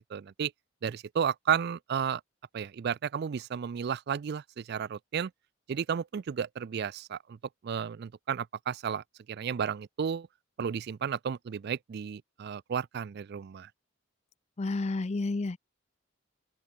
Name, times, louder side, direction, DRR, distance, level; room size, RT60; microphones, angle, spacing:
voice 1, 0.1-0.5 0.8-2.2 2.5-5.3 5.7-7.4 7.6-10.3 10.6-13.7, right 7 dB, 50° right, 0.3 m, -33 dB
voice 2, 14.6-15.6, left 3 dB, 35° left, 0.5 m, -30 dB
open air
head